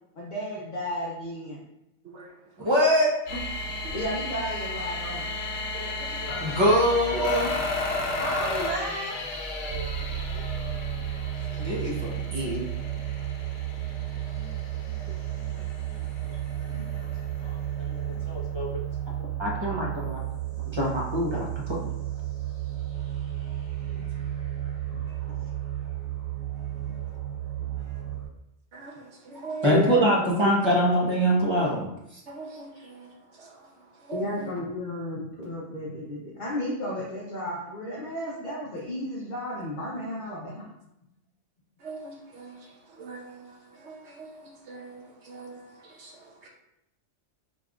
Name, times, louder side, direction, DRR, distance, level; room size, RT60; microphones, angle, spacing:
voice 1, 0.1-1.6 3.9-5.2 8.2-9.2 16.7-16.8 18.1-18.2 23.9-24.0 24.8-25.4 29.6-30.9 34.1-40.7, left 1 dB, 45° left, -5 dB, 0.9 m, -33 dB
voice 2, 2.6-3.4 6.4-7.5 11.5-12.6 17.4-18.8 19.4-20.2 20.7-21.9 29.6-32.2, equal, 25° right, -4 dB, 1.0 m, -24 dB
sound 1, 3.3-18.2 18.8-18.9, left 2 dB, 75° left, 1.0 m, -34 dB
voice 3, 5.7-6.3 28.7-29.8 32.3-33.1 33.4-33.5 34.1-34.5 41.8-42.7 43.0-43.6 43.8-45.6 46.0-46.1 46.4-46.5, right 3 dB, 65° right, -1 dB, 1.1 m, -41 dB
sound 2, 9.7-28.2, right 11 dB, 50° right, 1.7 m, -33 dB
5.0 x 3.3 x 2.5 m, 0.84 s
omnidirectional pair, 1.3 m